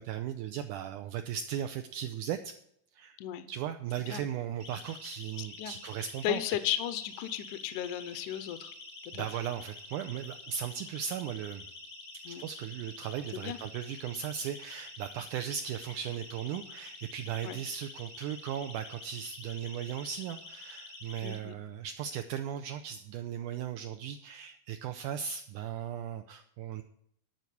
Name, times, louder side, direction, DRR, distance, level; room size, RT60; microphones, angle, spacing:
voice 1, 0.0-2.5 2.9-3.2 3.5-6.4 9.1-11.7 12.3-26.8, right 9 dB, 85° right, 8 dB, 1.8 m, -37 dB
Siren, 4.6-21.4, left 3 dB, 50° left, 1.0 m, -48 dB
voice 2, 5.4-5.8 6.2-8.7 9.0-9.3 12.3-12.5 13.3-13.6 17.4-17.6 21.2-21.6, left 12 dB, 75° left, 12 dB, 1.9 m, -35 dB
12.0 x 4.6 x 8.3 m, 0.71 s
omnidirectional pair, 4.2 m